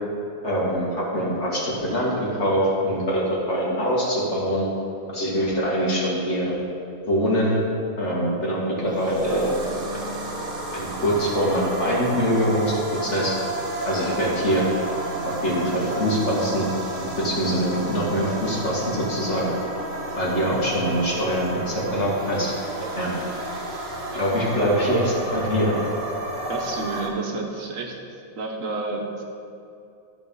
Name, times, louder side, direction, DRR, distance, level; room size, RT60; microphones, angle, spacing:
voice 1, 0.4-4.7 5.1-6.5 7.1-7.6 8.0-9.5 9.9-10.0 10.7-13.3 13.8-14.6 15.2-19.5 20.2-21.5 21.9-22.5 22.8-23.1 24.1-25.7, equal, 55° left, -5 dB, 2.4 m, -24 dB
sound 1, 8.8-27.1, right 1 dB, 40° right, 1.4 m, -32 dB
voice 2, 26.5-28.0 28.4-29.2, right 3 dB, 70° right, 1 dB, 1.4 m, -30 dB
13.5 x 4.8 x 5.4 m, 2.7 s
omnidirectional pair, 1.4 m